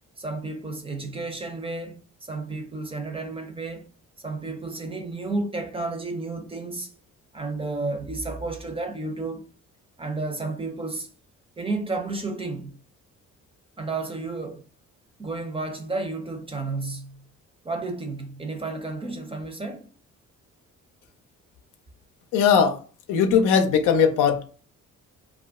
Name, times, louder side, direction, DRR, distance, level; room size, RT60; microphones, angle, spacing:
voice 1, 0.2-3.9 4.2-6.9 7.3-9.4 10.0-11.1 11.6-12.8 13.8-14.6 15.2-17.2 17.6-19.9, right 3 dB, 20° right, 0.5 m, -32 dB
voice 2, 22.3-22.8 23.1-24.4, left 7 dB, 85° left, 0.6 m, -19 dB
2.4 x 2.1 x 3.5 m
cardioid pair, 90°, 30 cm